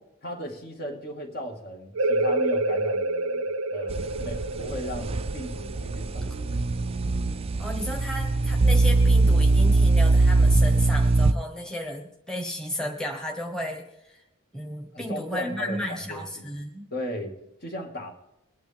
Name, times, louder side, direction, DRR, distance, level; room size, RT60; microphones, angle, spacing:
voice 1, 0.2-6.5 14.9-16.5 16.9-18.1, equal, 50° left, 2 dB, 2.1 m, -36 dB
sound 1, 2.0-7.3, right 2 dB, 85° right, 0.6 m, -28 dB
sound 2, 3.9-11.3, right 3 dB, 30° right, 0.4 m, -22 dB
voice 2, 7.6-14.2 14.5-16.9, equal, 5° left, 3 dB, 1.3 m, -34 dB
22.5 x 9.3 x 3.6 m, 0.86 s
head